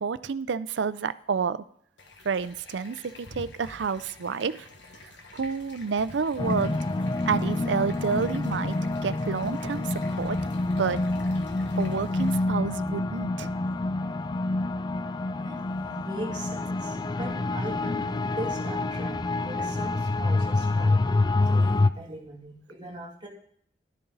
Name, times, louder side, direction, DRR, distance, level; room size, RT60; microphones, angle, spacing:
voice 1, 0.0-1.6 2.2-4.7 5.3-6.8 7.3-10.4 10.8-11.0 11.8-13.5, right 5 dB, 90° right, 15 dB, 0.5 m, -29 dB
sound 1, 2.0-12.4, left 2 dB, 85° left, 1.4 m, -48 dB
sound 2, 6.4-21.9, left 2 dB, 25° left, 0.3 m, -27 dB
voice 2, 15.4-23.3, right 1 dB, 25° right, -2 dB, 2.6 m, -39 dB
11.5 x 11.0 x 4.0 m, 0.64 s
head